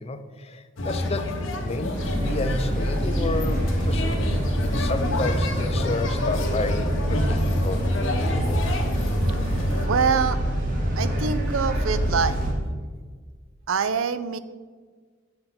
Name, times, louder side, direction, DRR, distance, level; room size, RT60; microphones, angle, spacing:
voice 1, 0.0-2.0 2.2-4.1 4.6-7.9, left 3 dB, 30° left, 9 dB, 0.5 m, -31 dB
sound 1, 0.8-9.9, left 1 dB, 75° left, 1.2 m, -28 dB
sound 2, 1.9-12.5, equal, 45° right, 2.1 m, -26 dB
voice 2, 9.9-10.4 11.0-12.4 13.7-14.4, right 6 dB, 85° right, 13 dB, 0.5 m, -24 dB
7.8 x 5.3 x 5.7 m, 1.5 s
head